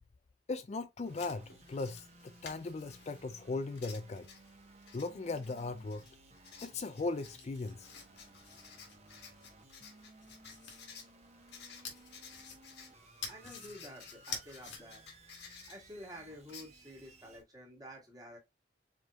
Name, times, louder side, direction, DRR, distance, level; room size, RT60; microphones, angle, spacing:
voice 1, 0.5-4.3 4.9-6.0 6.6-7.9, left 3 dB, 35° left, 0.4 m, -38 dB
sound 1, 1.0-17.4, right 2 dB, 35° right, 1.1 m, -59 dB
Writing, 1.1-17.4, left 6 dB, 70° left, 1.6 m, -56 dB
sound 2, 7.1-9.5 10.0-10.8 11.8-12.9 13.2-13.7 14.2-14.8, left 5 dB, 90° left, 1.9 m, -46 dB
voice 2, 13.3-15.0 15.7-18.4, equal, 20° right, 1.8 m, -50 dB
4.9 x 4.4 x 2.4 m
head